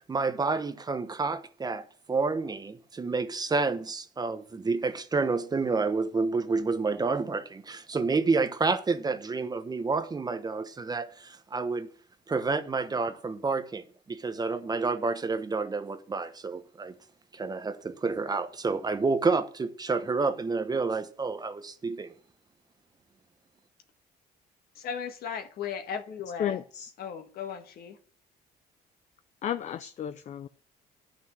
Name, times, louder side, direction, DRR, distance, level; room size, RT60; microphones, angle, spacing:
voice 1, 0.1-11.9 12.3-17.0 17.3-22.1, right 4 dB, 25° right, 0.9 m, -29 dB
voice 2, 24.7-26.6 27.0-28.0, left 7 dB, 65° left, 1.7 m, -36 dB
voice 3, 26.4-26.9 29.4-30.5, left 9 dB, 45° left, 0.5 m, -33 dB
10.0 x 5.9 x 6.3 m
cardioid pair, 110°, 17 cm